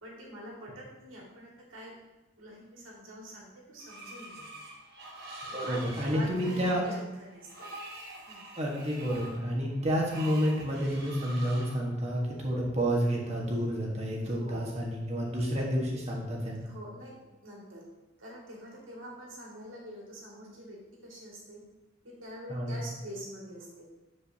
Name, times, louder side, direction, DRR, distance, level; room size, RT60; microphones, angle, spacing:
voice 1, 0.0-1.9 2.4-4.5 5.4-5.8 6.1-7.7 8.3-8.4 14.2-14.7 16.7-17.8 18.2-21.6 22.0-23.9, equal, 85° right, -4 dB, 2.2 m, -45 dB
Screech, 3.8-11.7, right 1 dB, 50° right, 1.4 m, -45 dB
voice 2, 5.5-6.8 8.6-16.7 22.5-22.7, equal, 35° right, -3 dB, 1.4 m, -30 dB
8.5 x 5.2 x 2.8 m, 1.0 s
head